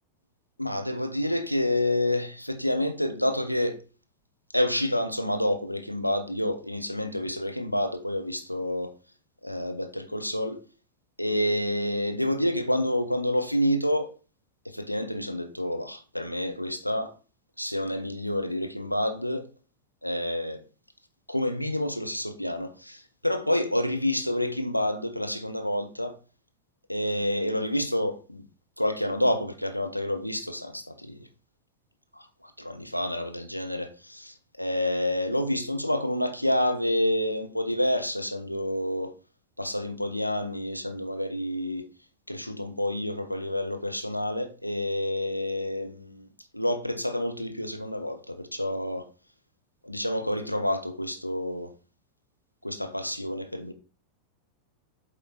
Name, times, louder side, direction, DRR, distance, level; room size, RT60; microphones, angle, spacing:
voice 1, 0.6-3.8 4.5-8.9 9.4-10.6 11.2-14.1 14.6-17.1 17.6-19.5 20.0-20.6 21.3-26.1 26.9-28.5 28.8-31.3 32.1-39.1 39.6-41.8 42.3-46.3 46.5-49.1 49.8-51.7 52.6-53.7, left 1 dB, 90° left, 0.9 m, -28 dB
8.6 x 3.5 x 4.2 m
figure-of-eight pair, 90°, 0 cm